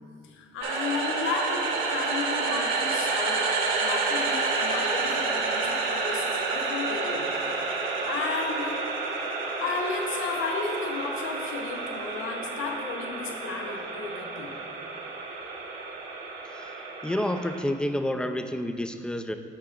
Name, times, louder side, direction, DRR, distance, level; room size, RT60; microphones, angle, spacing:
voice 1, 0.2-3.5 3.8-7.4 8.0-9.0 9.6-14.6, left 4 dB, 85° left, 2 dB, 0.8 m, -33 dB
sound 1, 0.6-17.6, right 3 dB, 85° right, 1.2 m, -30 dB
voice 2, 16.4-16.8 17.0-19.4, left 1 dB, 5° left, 7 dB, 0.4 m, -29 dB
13.0 x 5.6 x 2.5 m, 2.3 s
cardioid pair, 90°, 20 cm